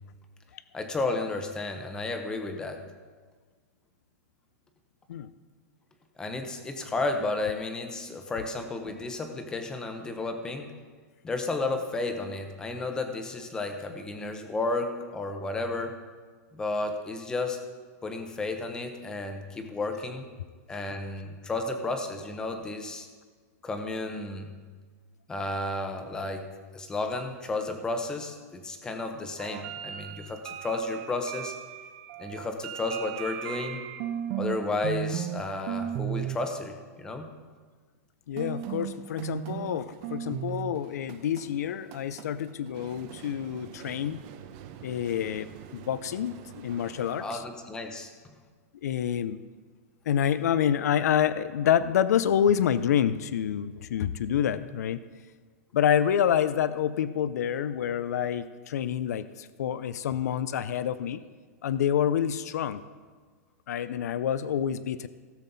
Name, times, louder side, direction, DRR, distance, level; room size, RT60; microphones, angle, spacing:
voice 1, 0.7-2.9 6.2-10.7 11.2-16.0 16.5-17.6 18.0-20.3 20.7-23.1 23.6-24.5 25.3-26.5 26.7-31.5 32.2-33.8 34.3-37.3 47.2-48.1, left 2 dB, 10° left, 6 dB, 0.8 m, -32 dB
sound 1, 29.4-34.6 34.8-35.4 35.7-36.4 38.4-47.3, right 11 dB, 35° right, 0.7 m, -37 dB
voice 2, 38.3-44.2 44.8-45.5 45.7-47.4 48.8-49.4 50.1-55.0 55.7-61.2 61.6-62.8 63.7-65.1, left 9 dB, 75° left, 14 dB, 0.6 m, -27 dB
17.0 x 7.4 x 4.0 m, 1.5 s
supercardioid pair, 170°, 9 cm